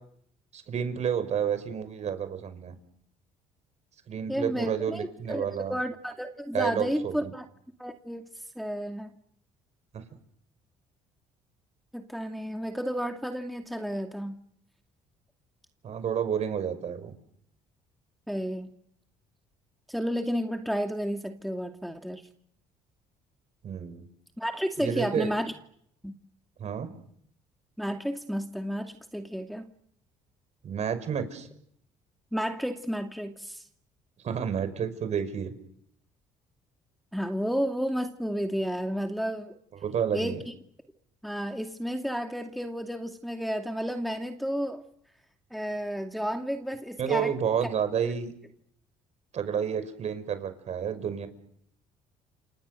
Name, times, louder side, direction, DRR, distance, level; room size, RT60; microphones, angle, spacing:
voice 1, 0.5-2.7 4.1-5.8 6.5-7.3 15.8-17.2 23.6-24.1 24.8-25.3 26.6-26.9 30.6-31.5 34.2-35.5 39.8-40.4 47.0-48.3 49.3-51.3, right 8 dB, 55° right, 10 dB, 5.6 m, -30 dB
voice 2, 4.3-7.4 7.8-8.3 8.6-9.1 11.9-14.4 18.3-18.7 19.9-22.2 24.4-25.5 26.0-26.1 27.8-29.7 32.3-33.6 37.1-39.6 40.1-40.4 41.2-44.8 45.5-47.3 48.0-48.1, equal, ahead, 4 dB, 2.5 m, -32 dB
30.0 x 27.0 x 6.8 m, 0.69 s
supercardioid pair, 80°, 14 cm